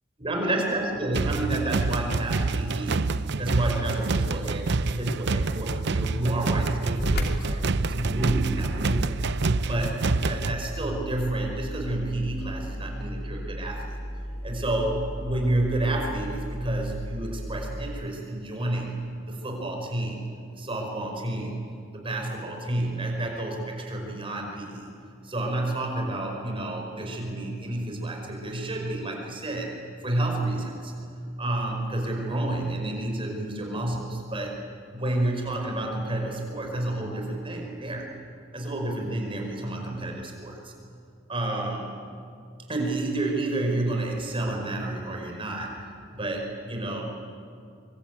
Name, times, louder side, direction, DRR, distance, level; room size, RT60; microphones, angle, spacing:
voice 1, 0.2-3.1 3.4-7.6 7.9-9.2 9.6-13.9 14.4-20.2 20.5-21.6 21.9-24.9 25.2-29.7 30.0-30.9 31.4-34.6 34.9-38.1 38.5-40.7 41.3-41.9 42.7-45.8 46.1-47.0, right 1 dB, 25° right, 2 dB, 5.2 m, -30 dB
sound 1, 1.1-10.5, right 3 dB, 60° right, 0.7 m, -27 dB
sound 2, 7.0-18.0, equal, 55° left, 2.6 m, -34 dB
24.5 x 24.0 x 9.3 m, 2.4 s
head